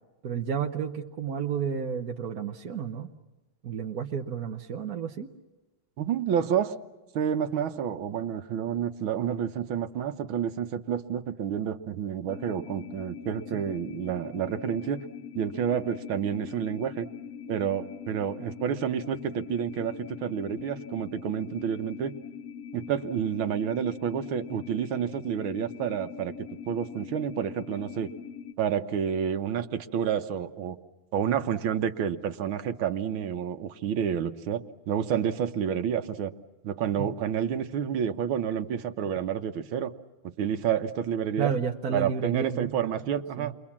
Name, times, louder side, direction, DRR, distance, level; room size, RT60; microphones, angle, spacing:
voice 1, 0.2-3.1 3.6-5.3 37.0-37.1 41.4-43.0 43.4-43.5, right 7 dB, 55° right, 2 dB, 1.4 m, -31 dB
voice 2, 6.0-6.8 7.1-15.0 15.4-17.1 17.5-22.1 22.7-26.4 26.7-28.1 28.6-30.8 31.1-36.3 36.6-39.9 40.2-41.5 41.9-43.5, right 8 dB, 85° right, 8 dB, 1.8 m, -29 dB
sound 1, 12.3-28.5, left 7 dB, 50° left, 1.3 m, -42 dB
29.0 x 23.0 x 7.3 m, 1.1 s
omnidirectional pair, 2.2 m